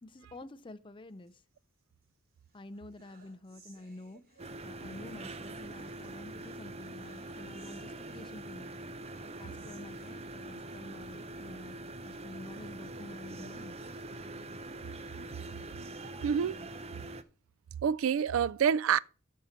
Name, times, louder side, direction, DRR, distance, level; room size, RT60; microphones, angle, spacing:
voice 1, 0.0-1.4 2.5-8.7 9.4-11.8 12.0-13.7, left 2 dB, 25° left, 0.6 m, -49 dB
sound 1, 1.1-2.1 2.4-11.2 11.6-11.7 12.0-12.1 12.7-15.2 15.7-17.1, right 2 dB, 50° right, 2.7 m, -64 dB
sound 2, 4.4-17.2, right 2 dB, 30° right, 0.6 m, -44 dB
voice 2, 16.2-16.6 17.8-19.0, right 7 dB, 90° right, 0.4 m, -27 dB
13.0 x 4.4 x 5.1 m
head